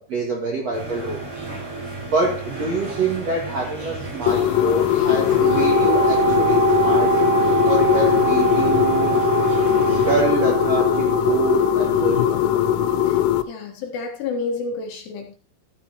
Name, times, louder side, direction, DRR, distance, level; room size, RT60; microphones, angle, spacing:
voice 1, 0.1-1.2 2.0-7.3 7.6-9.2 9.9-12.7, right 3 dB, 50° right, 2.0 m, -26 dB
sound 1, 0.7-10.2, right 3 dB, 35° right, 7.2 m, -33 dB
sound 2, 4.3-13.4, left 12 dB, 90° left, 3.4 m, -20 dB
Wind instrument woodwind instrument, 5.4-13.1, right 6 dB, 10° right, 3.6 m, -23 dB
voice 2, 13.5-15.4, left 4 dB, 65° left, 3.1 m, -29 dB
13.5 x 10.0 x 3.0 m
omnidirectional pair, 5.9 m